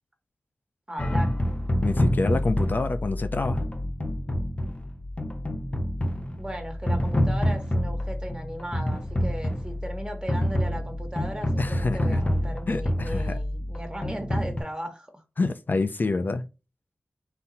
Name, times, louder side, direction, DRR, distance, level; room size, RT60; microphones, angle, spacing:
voice 1, 0.9-1.3 6.4-15.2, right 1 dB, 20° right, 1.6 m, -36 dB
sound 1, 1.0-14.6, left 1 dB, 30° left, 0.9 m, -27 dB
voice 2, 1.8-3.6 11.6-12.2 12.7-13.4 15.4-16.4, left 3 dB, 55° left, 0.5 m, -27 dB
4.0 x 2.7 x 4.1 m
wide cardioid pair, 60°, 4 cm